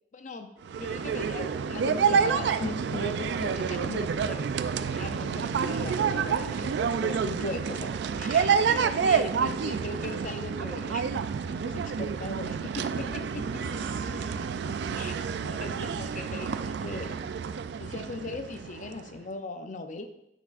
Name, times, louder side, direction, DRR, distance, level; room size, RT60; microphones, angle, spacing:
voice 1, 0.1-0.5 0.8-4.5 4.8-11.0 11.5-13.4 15.0-15.1 15.4-17.2 17.8-20.1, left 3 dB, 45° left, 8 dB, 0.5 m, -38 dB
sound 1, 0.6-19.1, right 6 dB, 65° right, 0.3 m, -29 dB
voice 2, 6.5-7.3 8.7-8.8 9.3-9.9 13.6-16.4, right 2 dB, 50° right, 5 dB, 0.7 m, -47 dB
9.7 x 5.9 x 2.5 m, 0.81 s
head